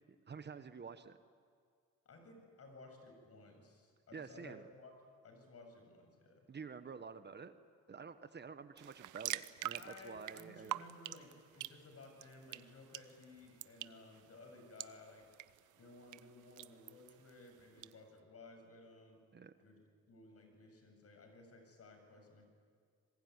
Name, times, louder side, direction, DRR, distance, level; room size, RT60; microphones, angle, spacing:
voice 1, 0.3-1.2 4.1-4.6 6.5-7.6 7.9-10.8 19.3-19.5, right 5 dB, 35° right, 10 dB, 1.2 m, -49 dB
voice 2, 2.1-6.5 9.8-15.3 15.8-19.2 19.6-19.8 20.1-22.4, left 2 dB, 50° left, 4 dB, 7.4 m, -57 dB
sound 1, 8.8-17.9, right 14 dB, 85° right, 0.8 m, -48 dB
26.0 x 21.5 x 9.6 m, 2.2 s
cardioid pair, 90°, 30 cm